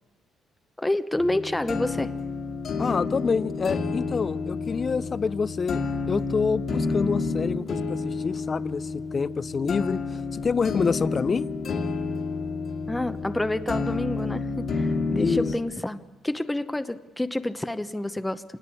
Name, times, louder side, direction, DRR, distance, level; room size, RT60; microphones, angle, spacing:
voice 1, 0.8-2.1 12.9-18.4, left 1 dB, 10° left, 0.9 m, -28 dB
sound 1, 1.2-15.5, left 4 dB, 60° left, 2.3 m, -30 dB
voice 2, 2.8-11.5 15.2-15.5, left 5 dB, 40° left, 0.7 m, -27 dB
26.0 x 19.5 x 8.4 m
cardioid pair, 90°, 0 cm